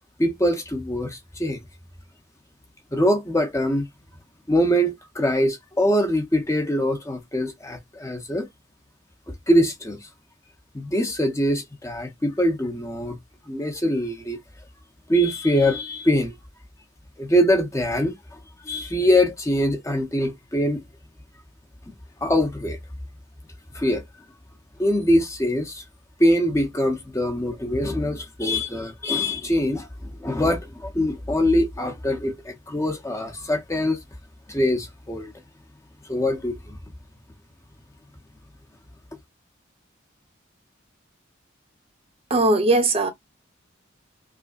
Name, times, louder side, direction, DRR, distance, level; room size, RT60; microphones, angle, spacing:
voice 1, 0.2-1.6 2.9-3.9 4.5-8.5 9.5-10.1 10.7-13.2 13.5-14.4 15.1-16.3 17.2-20.8 22.2-22.8 23.7-24.0 24.8-25.8 26.2-34.0 34.5-35.3 36.1-36.8, equal, 15° left, 0.6 m, -23 dB
voice 2, 42.3-43.1, right 2 dB, 30° right, 0.7 m, -19 dB
4.9 x 2.0 x 2.4 m
head